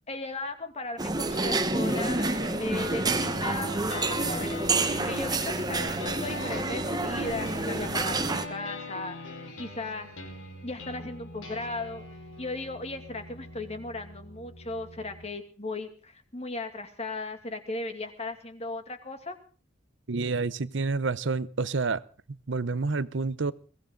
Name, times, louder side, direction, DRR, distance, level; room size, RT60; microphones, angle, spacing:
voice 1, 0.1-2.2 2.6-9.2 9.6-10.1 10.6-12.1 12.4-19.4, left 2 dB, 30° left, 7 dB, 2.3 m, -37 dB
sound 1, 1.0-8.5, right 3 dB, 20° right, 1.1 m, -28 dB
sound 2, 1.3-15.3, left 3 dB, 75° left, 5.0 m, -41 dB
voice 2, 20.1-22.0 22.3-23.5, right 4 dB, 60° right, 16 dB, 0.7 m, -29 dB
22.5 x 16.5 x 3.9 m, 0.38 s
head